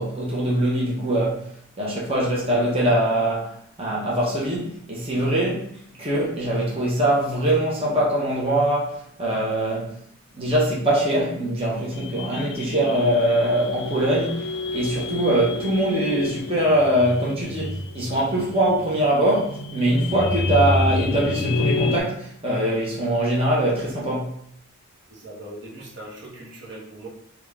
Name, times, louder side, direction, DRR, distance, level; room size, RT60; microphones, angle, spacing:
voice 1, 0.0-1.5 1.8-5.7 6.0-10.0 10.4-24.4, right 1 dB, 30° right, 0.8 m, -22 dB
sound 1, 11.9-22.0, left 2 dB, 55° left, 0.4 m, -28 dB
voice 2, 25.1-27.1, right 1 dB, 60° right, 0.9 m, -40 dB
3.4 x 2.4 x 3.5 m
head